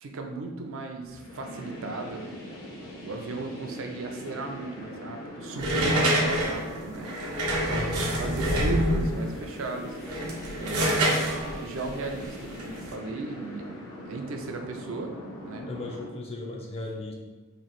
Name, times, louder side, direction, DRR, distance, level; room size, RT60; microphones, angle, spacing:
voice 1, 0.0-2.3 2.6-2.7 3.0-7.9 8.2-10.0 10.6-11.2 11.6-13.7 14.0-15.1 15.4-15.7, right 3 dB, 60° right, 3 dB, 0.4 m, -36 dB
sound 1, 1.1-16.0, equal, 80° left, 0.9 m, -41 dB
sound 2, 5.6-9.2 9.9-12.9, right 1 dB, 85° right, 0.9 m, -26 dB
voice 2, 7.7-8.6 15.7-17.1, left 2 dB, 25° left, 0 dB, 0.4 m, -37 dB
3.0 x 2.5 x 4.0 m, 1.3 s
head